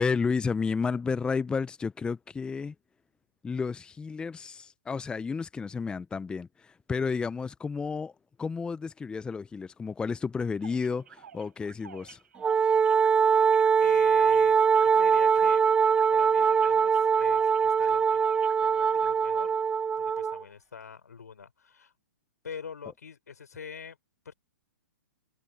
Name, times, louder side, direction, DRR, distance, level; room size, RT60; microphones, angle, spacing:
voice 1, 0.0-2.7 3.4-8.1 8.4-12.2, left 5 dB, 10° left, 0.8 m, -31 dB
sound 1, 10.6-19.1, right 8 dB, 65° right, 6.4 m, -51 dB
Wind instrument woodwind instrument, 12.4-20.4, right 6 dB, 10° right, 0.5 m, -22 dB
voice 2, 13.8-15.7 16.1-18.2 18.6-19.6 20.0-21.9 22.4-24.0 24.3-24.4, left 6 dB, 75° left, 5.2 m, -44 dB
figure-of-eight pair, 120°, 9 cm